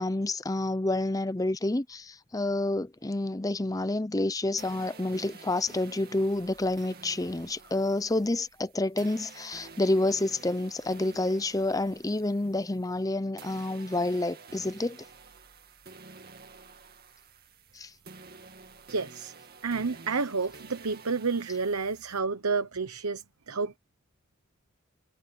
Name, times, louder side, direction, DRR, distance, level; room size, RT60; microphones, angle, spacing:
voice 1, 0.0-15.0 17.7-17.9, left 2 dB, 15° left, 0.6 m, -29 dB
sound 1, 4.6-13.1 13.4-22.2, right 4 dB, 45° right, 2.2 m, -50 dB
voice 2, 18.9-19.3 19.6-23.8, right 4 dB, 85° right, 1.1 m, -30 dB
head